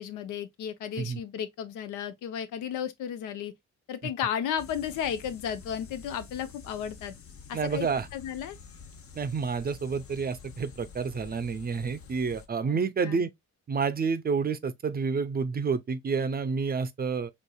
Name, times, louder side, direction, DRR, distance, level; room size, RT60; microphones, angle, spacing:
voice 1, 0.0-3.5 3.9-7.1 7.5-8.6 12.6-13.3, left 9 dB, 85° left, 0.7 m, -34 dB
sound 1, 4.6-12.5, left 5 dB, 50° left, 0.8 m, -48 dB
voice 2, 7.5-8.1 9.2-13.3 13.7-17.3, right 5 dB, 30° right, 0.5 m, -29 dB
4.5 x 2.9 x 2.2 m
cardioid pair, 90°, 30 cm